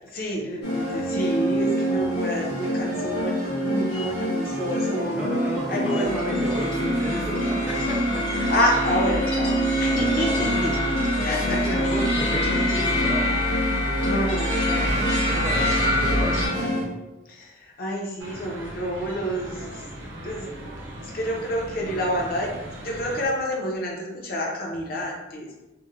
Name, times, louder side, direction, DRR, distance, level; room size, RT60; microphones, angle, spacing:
voice 1, 0.0-3.4 3.6-5.2 5.7-6.4 8.3-10.7 11.2-11.8 12.5-12.6 14.0-15.0 17.3-19.9 20.2-20.5 21.0-22.5 22.8-25.5, equal, 50° left, -1 dB, 0.5 m, -28 dB
sound 1, 0.6-16.8, right 1 dB, 70° left, 1.3 m, -26 dB
voice 2, 5.1-8.2 9.8-10.7 11.2-13.3 15.3-16.5 16.7-17.0, right 1 dB, 5° right, -4 dB, 0.4 m, -32 dB
sound 2, 6.0-16.5, left 1 dB, 85° left, 1.1 m, -27 dB
sound 3, 18.2-23.3, right 1 dB, 85° right, 0.6 m, -39 dB
3.0 x 2.1 x 2.3 m, 1.0 s
head